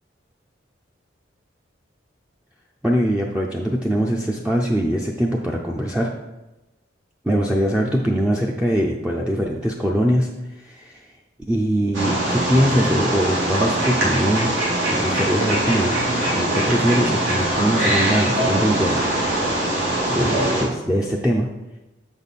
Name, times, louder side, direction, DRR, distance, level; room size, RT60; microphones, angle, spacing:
voice 1, 2.8-6.1 7.2-11.1 11.5-14.5 14.9-16.0 16.3-19.0 20.1-21.5, equal, 5° right, -2 dB, 0.4 m, -22 dB
Wild animals, 11.9-20.6, right 1 dB, 90° right, 2.5 m, -22 dB
6.8 x 5.3 x 4.1 m, 1.0 s
head